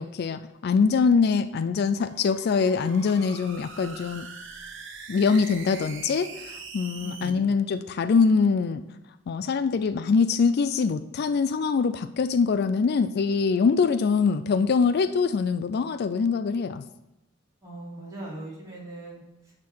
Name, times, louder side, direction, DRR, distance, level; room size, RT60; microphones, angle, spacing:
voice 1, 0.0-4.3 5.1-8.8 9.3-16.8, left 5 dB, 55° left, 11 dB, 0.3 m, -23 dB
sound 1, 1.9-7.3, right 5 dB, 65° right, 1.0 m, -43 dB
voice 2, 7.0-7.5 16.5-16.6 17.6-19.5, right 2 dB, 20° right, -7 dB, 3.4 m, -40 dB
11.0 x 3.7 x 6.1 m, 0.98 s
head